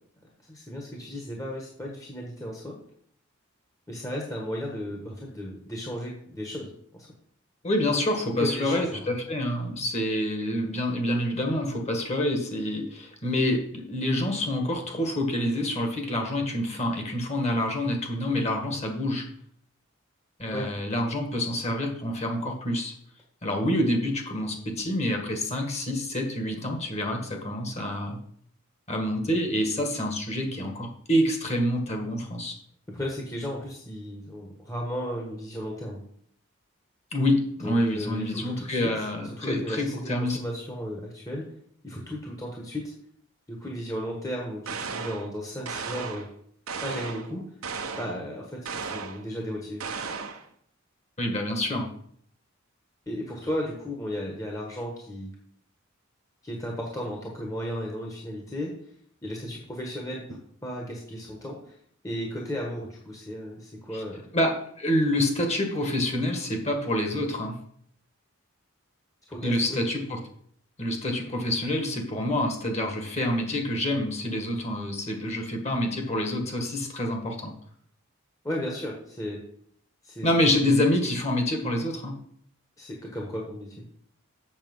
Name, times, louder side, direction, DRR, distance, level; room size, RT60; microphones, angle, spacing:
voice 1, 0.5-2.8 3.9-7.1 8.4-9.2 17.5-17.6 20.5-20.7 32.9-36.0 37.6-38.9 39.2-41.5 41.8-42.9 43.5-46.3 46.8-47.4 47.9-49.8 53.1-55.3 56.4-58.7 59.2-60.2 60.6-61.7 62.0-64.3 69.3-69.8 78.4-79.4 80.0-80.3 82.8-83.8, equal, 15° left, -1 dB, 1.3 m, -35 dB
voice 2, 7.6-19.3 20.4-22.9 23.4-28.2 28.9-32.6 37.1-40.4 51.2-51.9 63.9-64.0 64.3-67.5 69.4-70.2 70.8-77.5 80.2-82.2, left 1 dB, 30° left, 3 dB, 1.7 m, -27 dB
sound 1, 44.6-45.3 45.6-46.3 46.7-47.3 47.6-48.2 48.6-49.2 49.8-50.4, right 5 dB, 80° right, 1.1 m, -35 dB
7.4 x 7.0 x 5.5 m, 0.64 s
head